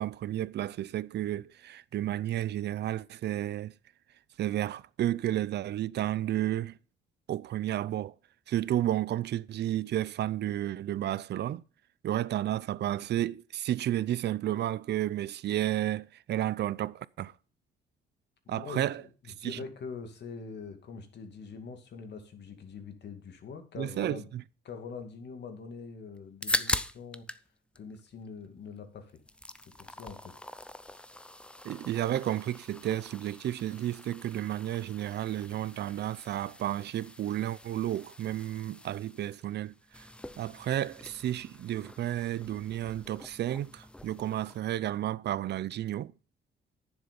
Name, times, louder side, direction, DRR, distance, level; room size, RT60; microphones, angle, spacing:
voice 1, 0.0-3.7 4.4-6.8 7.3-8.1 8.5-11.6 12.0-17.3 18.5-19.0 19.4-19.6 23.8-24.4 31.6-40.1 40.4-46.1, right 12 dB, 60° right, 0.5 m, -32 dB
voice 2, 18.5-24.3 24.6-27.3 27.8-29.2 29.8-30.4, left 5 dB, 60° left, 2.3 m, -44 dB
sound 1, 26.2-27.5 27.7-28.8 29.1-44.6, left 1 dB, 5° left, 0.6 m, -41 dB
10.5 x 7.3 x 5.2 m
cardioid pair, 90°, 20 cm